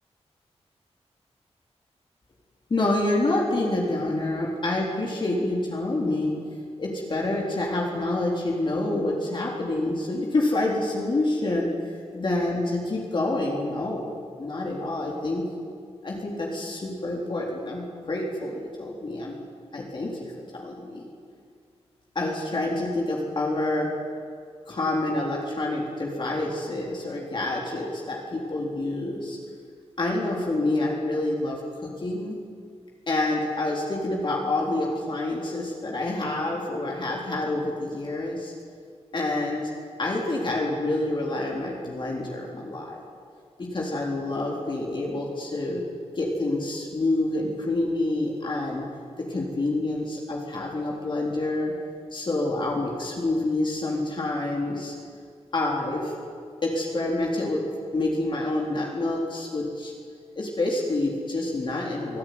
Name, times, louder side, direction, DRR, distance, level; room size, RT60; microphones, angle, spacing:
voice 1, 2.7-6.4 6.8-15.4 16.0-19.3 19.7-21.1 22.2-23.9 24.7-29.4 30.0-32.4 33.1-38.5 39.1-39.6 40.0-43.0 43.6-45.8 46.2-48.9 49.2-51.7 52.1-54.9 55.5-56.1 56.6-59.9 60.4-62.2, left 2 dB, 45° left, -2 dB, 4.0 m, -27 dB
24.0 x 15.0 x 9.7 m, 2.1 s
wide cardioid pair, 125°, 11 cm